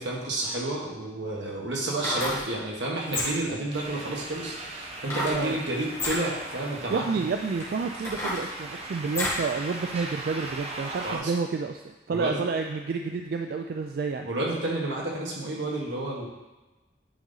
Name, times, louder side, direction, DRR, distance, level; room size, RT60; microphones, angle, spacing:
voice 1, 0.0-7.2 11.0-11.3 12.1-12.4 14.2-16.3, right 2 dB, 85° right, -2 dB, 1.5 m, -30 dB
sound 1, 1.8-2.5 3.0-3.6 5.0-5.4 5.9-6.2 6.9-7.0 7.6-9.5 9.9-10.0, left 1 dB, 15° left, 1.5 m, -31 dB
sound 2, 3.7-11.2, right 2 dB, 35° right, 0.8 m, -39 dB
voice 2, 6.9-11.8 12.1-14.3, right 4 dB, 55° right, 4 dB, 0.3 m, -30 dB
8.9 x 4.0 x 3.9 m, 1.1 s
head